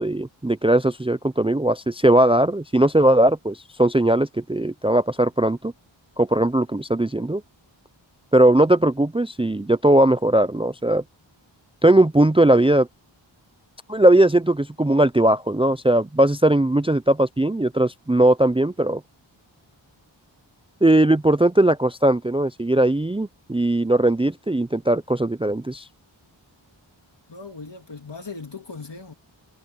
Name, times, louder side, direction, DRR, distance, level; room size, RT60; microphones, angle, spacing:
voice 1, 0.0-5.7 6.2-7.4 8.3-11.0 11.8-12.9 13.9-19.0 20.8-25.8, right 1 dB, 10° right, 0.5 m, -19 dB
voice 2, 27.3-29.1, left 4 dB, 65° left, 3.2 m, -38 dB
wide cardioid pair, 45°, 46 cm